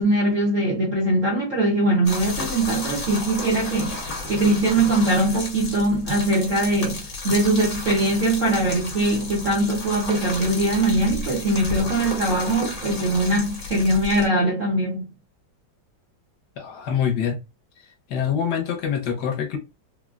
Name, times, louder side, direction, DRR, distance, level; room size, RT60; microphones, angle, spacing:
voice 1, 0.0-15.1, right 1 dB, 65° right, 0.7 m, -22 dB
sound 1, 2.1-14.3, left 3 dB, 40° left, 1.4 m, -33 dB
voice 2, 16.6-17.4 18.1-19.6, left 8 dB, 65° left, 1.1 m, -25 dB
3.7 x 2.1 x 2.3 m
omnidirectional pair, 2.2 m